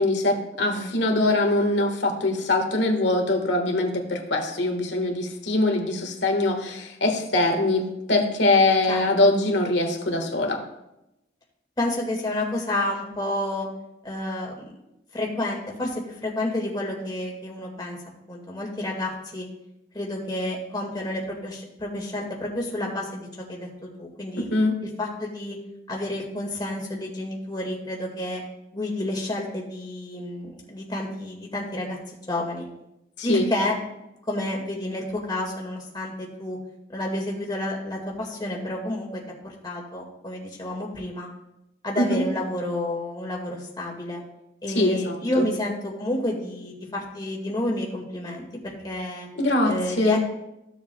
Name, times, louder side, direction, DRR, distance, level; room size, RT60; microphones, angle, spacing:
voice 1, 0.0-10.6 24.4-24.8 33.2-33.5 42.0-42.3 44.7-45.5 49.4-50.2, left 2 dB, 90° left, 3 dB, 1.6 m, -23 dB
voice 2, 11.8-13.7 14.0-14.7 15.1-18.0 18.3-19.5 19.9-23.7 24.0-24.5 24.8-25.6 25.9-28.4 28.7-32.7 33.2-33.7 34.3-36.6 36.9-41.3 41.8-44.2 44.6-49.3 49.6-50.2, left 1 dB, 25° left, -1 dB, 1.9 m, -30 dB
15.0 x 7.2 x 2.3 m, 0.88 s
head